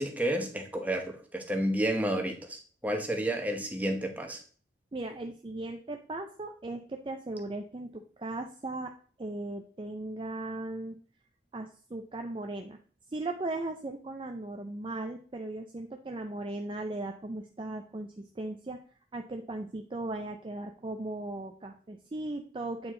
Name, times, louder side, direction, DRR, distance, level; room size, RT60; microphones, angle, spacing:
voice 1, 0.0-4.4, right 1 dB, 10° right, 4 dB, 1.0 m, -31 dB
voice 2, 4.9-8.9 9.2-11.0 11.5-12.8 13.1-18.8 19.1-22.9, right 2 dB, 25° right, 4 dB, 0.4 m, -37 dB
8.5 x 4.7 x 3.7 m, 0.43 s
head